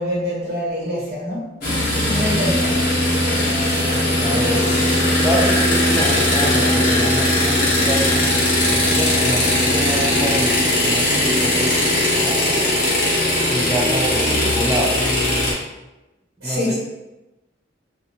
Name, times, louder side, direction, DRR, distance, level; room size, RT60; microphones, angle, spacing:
voice 1, 0.0-1.5 2.1-2.8 16.4-16.7, left 1 dB, 70° right, -9 dB, 1.1 m, -25 dB
sound 1, 1.6-15.5, left 1 dB, 50° left, 0.7 m, -19 dB
voice 2, 3.9-13.0 13.4-14.9 16.4-16.7, right 1 dB, 10° right, -3 dB, 0.4 m, -27 dB
2.5 x 2.3 x 2.8 m, 1.0 s
head